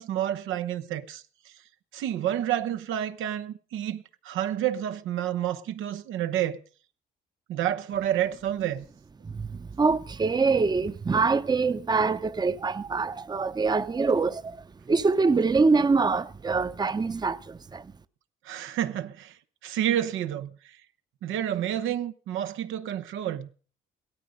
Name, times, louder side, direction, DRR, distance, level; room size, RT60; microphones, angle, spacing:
voice 1, 0.0-1.5 1.9-6.6 7.5-8.8 18.4-20.8 21.2-23.5, right 11 dB, 85° right, 1.0 m, -29 dB
voice 2, 9.2-14.6 14.9-17.9, right 4 dB, 20° right, 0.8 m, -24 dB
16.5 x 13.0 x 5.3 m
cardioid pair, 90°, 20 cm